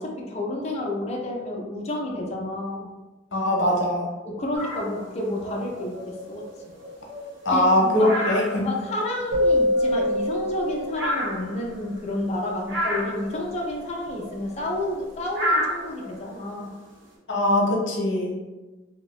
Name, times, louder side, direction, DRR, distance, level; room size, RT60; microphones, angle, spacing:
voice 1, 0.0-2.9 4.2-6.5 7.5-8.1 8.5-16.8, left 1 dB, 35° left, -1 dB, 0.5 m, -30 dB
voice 2, 3.3-4.1 7.4-8.6 17.3-18.3, left 1 dB, 70° left, -1 dB, 0.8 m, -21 dB
sound 1, 4.6-5.0 5.3-7.7 8.0-9.3 9.6-12.2 12.6-13.7 13.9-16.9, equal, 80° right, 1.2 m, -31 dB
sound 2, 9.3-11.6, left 1 dB, 50° right, 0.9 m, -24 dB
2.8 x 2.6 x 3.0 m, 1.2 s
head